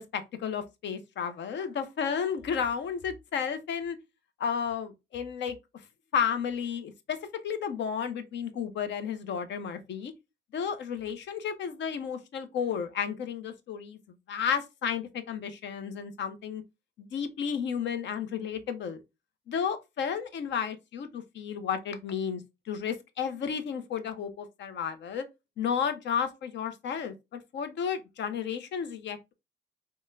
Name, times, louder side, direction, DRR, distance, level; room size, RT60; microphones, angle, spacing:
voice 1, 0.0-4.0 4.4-5.6 6.1-7.2 7.4-10.1 10.5-14.0 14.3-16.6 17.0-19.0 19.5-22.4 22.7-25.2 25.6-29.2, left 7 dB, 65° left, 0.6 m, -32 dB
3.7 x 2.1 x 2.5 m
cardioid pair, 90°, 20 cm